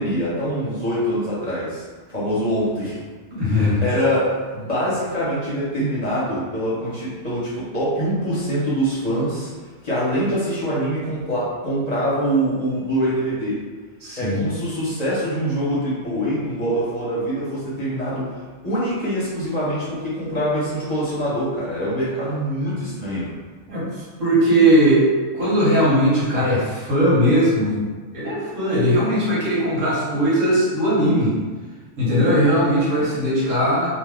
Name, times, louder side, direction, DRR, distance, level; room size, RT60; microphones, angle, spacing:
voice 1, 0.0-3.0 3.5-9.5 9.8-13.6 14.2-18.4 18.6-23.3, equal, 40° left, -8 dB, 0.8 m, -24 dB
voice 2, 3.3-3.8 14.0-14.4 23.7-23.9 24.2-25.1 25.3-27.8 28.1-31.3 32.0-33.9, equal, 85° right, -8 dB, 1.5 m, -19 dB
2.8 x 2.3 x 3.4 m, 1.4 s
omnidirectional pair, 1.3 m